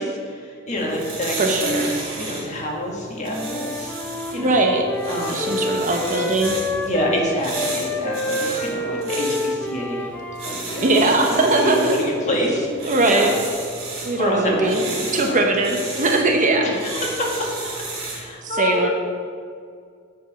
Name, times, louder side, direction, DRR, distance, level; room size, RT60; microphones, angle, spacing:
voice 1, 0.0-3.9 4.3-4.6 5.1-5.5 6.8-10.1 10.4-13.3 14.2-15.4 16.6-17.8 18.1-18.9, left 1 dB, 35° left, -1 dB, 1.6 m, -27 dB
sound 1, 0.7-18.3, right 3 dB, 75° right, 2.4 m, -34 dB
voice 2, 1.4-1.9 4.4-4.8 5.3-6.6 10.8-11.9 12.8-13.3 14.0-14.9 15.1-16.8 18.4-18.9, right 2 dB, 40° right, 2 dB, 0.9 m, -20 dB
Wind instrument woodwind instrument, 3.3-7.2 7.5-11.8, left 1 dB, 10° left, 0.6 m, -29 dB
7.9 x 5.4 x 5.9 m, 2.2 s
head